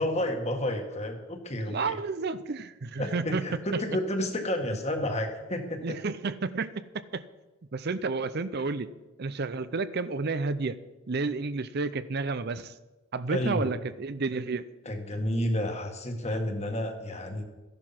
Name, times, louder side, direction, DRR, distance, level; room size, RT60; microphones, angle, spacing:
voice 1, 0.0-2.0 3.0-6.0 13.3-13.8 14.8-17.4, left 1 dB, 30° left, 5 dB, 1.8 m, -31 dB
voice 2, 1.6-3.4 5.8-7.2 7.7-8.9 9.2-10.8 11.1-12.7 13.1-14.6, right 4 dB, 50° right, 14 dB, 0.6 m, -31 dB
14.5 x 11.0 x 5.9 m, 1.1 s
head